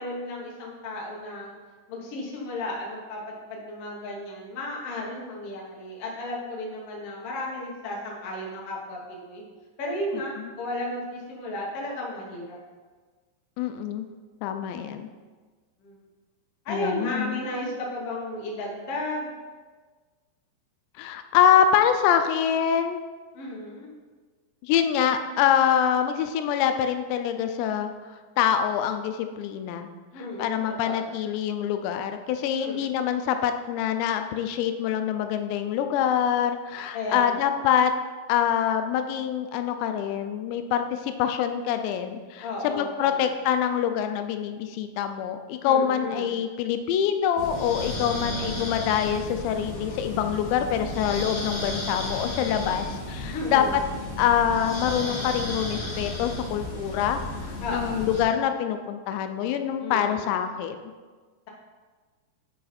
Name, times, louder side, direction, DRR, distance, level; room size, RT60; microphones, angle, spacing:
voice 1, 0.0-1.5 1.9-9.4 9.8-12.6 15.8-16.0 16.6-19.3 23.3-23.9 30.1-31.1 32.6-32.9 36.9-37.4 42.4-43.3 45.6-46.3 48.0-48.6 53.3-53.8 57.6-58.1 59.8-60.3, left 1 dB, 70° left, -3 dB, 1.4 m, -34 dB
voice 2, 13.6-14.1 14.4-15.1 16.7-17.4 21.0-23.0 24.6-29.9 30.4-37.9 38.3-53.6 54.2-60.8, left 9 dB, 85° left, 7 dB, 2.8 m, -25 dB
sound 1, 47.4-58.2, left 2 dB, 40° left, 2.7 m, -33 dB
10.0 x 5.0 x 4.2 m, 1.4 s
omnidirectional pair, 5.0 m